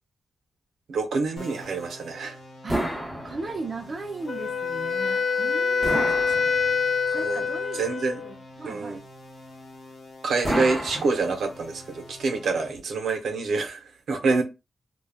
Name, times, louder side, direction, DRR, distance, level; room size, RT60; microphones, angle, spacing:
voice 1, 0.9-2.4 5.8-6.2 7.1-7.4 7.7-8.2 8.7-9.0 10.2-14.4, right 4 dB, 85° right, 0.7 m, -27 dB
sound 1, 1.4-12.7, left 1 dB, 70° left, 0.7 m, -46 dB
sound 2, 2.7-3.9 5.8-7.1 10.4-11.7, equal, 10° left, 0.9 m, -31 dB
voice 2, 3.2-6.3 7.1-7.8 8.2-9.0 14.3-14.4, right 3 dB, 30° right, 0.5 m, -37 dB
Wind instrument woodwind instrument, 4.3-8.3, left 5 dB, 40° left, 0.3 m, -25 dB
2.3 x 2.2 x 3.3 m
wide cardioid pair, 160°, 0 cm